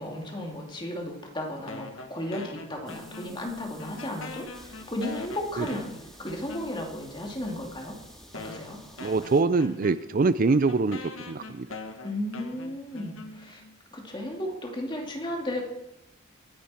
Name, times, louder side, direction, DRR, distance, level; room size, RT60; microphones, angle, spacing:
voice 1, 0.0-5.9 6.2-8.0 8.3-8.8 12.0-13.6 13.9-15.6, left 1 dB, 25° left, 1 dB, 2.7 m, -34 dB
sound 1, 1.7-3.5 3.8-7.0 7.8-7.9 8.3-13.7, left 3 dB, 85° left, 1.6 m, -43 dB
sound 2, 2.9-9.4, equal, 5° left, 2.2 m, -50 dB
voice 2, 9.0-11.7, right 3 dB, 45° right, 14 dB, 0.5 m, -24 dB
24.0 x 10.5 x 4.4 m, 0.85 s
head